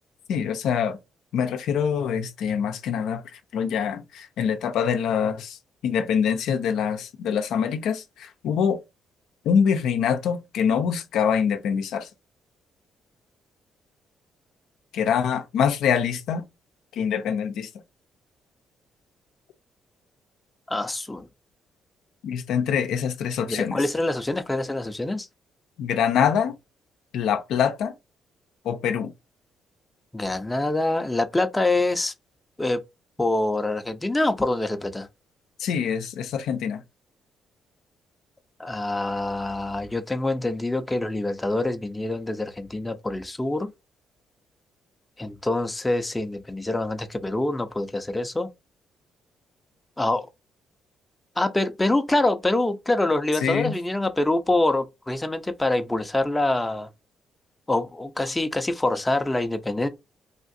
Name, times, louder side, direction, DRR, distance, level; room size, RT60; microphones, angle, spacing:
voice 1, 0.3-1.0 1.3-5.6 5.8-8.8 9.4-12.1 14.9-16.4 16.9-17.7 22.2-23.8 25.8-26.6 27.1-27.9 28.6-29.1 35.6-36.8 53.4-53.7, left 7 dB, 80° left, 0.5 m, -24 dB
voice 2, 20.7-21.3 23.5-25.3 30.1-32.1 32.6-32.8 33.2-35.1 38.6-43.7 45.2-48.5 50.0-50.3 51.4-56.9 57.7-59.9, left 2 dB, 15° left, 0.5 m, -25 dB
3.5 x 2.4 x 2.6 m
cardioid pair, 90°, 0 cm